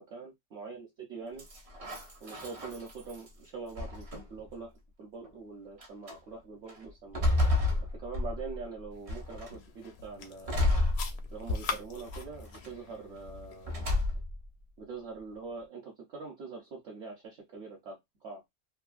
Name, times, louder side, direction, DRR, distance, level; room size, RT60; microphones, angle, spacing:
voice 1, 0.0-1.5 2.2-4.7 5.0-7.2 7.9-10.6 11.3-13.7 14.8-18.0 18.2-18.4, right 4 dB, 55° right, -3 dB, 1.0 m, -43 dB
sound 1, 1.4-3.3 3.8-4.5 5.2-5.3 5.8-6.2 6.7-8.6 9.1-9.6 10.5-11.6 12.1-12.7 13.6-14.5, left 2 dB, 40° right, 0.5 m, -31 dB
sound 2, 8.9-14.1, left 4 dB, 65° left, 0.7 m, -41 dB
2.9 x 2.3 x 2.4 m, 0.17 s
omnidirectional pair, 1.5 m